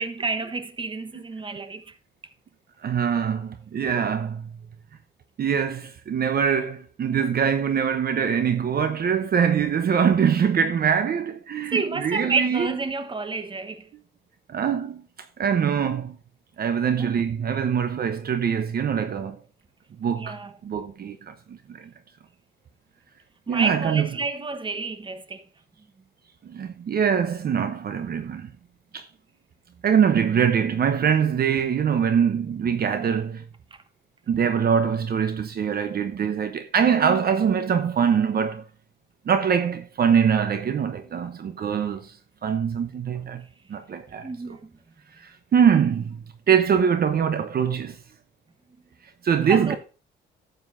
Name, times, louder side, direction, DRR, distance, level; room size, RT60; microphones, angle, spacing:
voice 1, 0.0-1.9 11.7-13.9 17.0-17.1 20.1-20.5 23.5-25.4 44.2-44.7 49.5-49.8, right 4 dB, 25° right, 1.2 m, -29 dB
voice 2, 2.8-4.5 5.4-12.7 14.5-15.0 15.4-16.2 16.6-19.4 20.0-21.9 23.5-24.1 26.4-28.5 28.9-29.0 29.8-33.4 34.3-38.6 39.3-42.2 42.4-43.4 43.7-44.6 45.2-48.0 49.2-49.8, right 7 dB, 50° right, 0.9 m, -23 dB
12.5 x 8.0 x 2.6 m
cardioid pair, 90°, 20 cm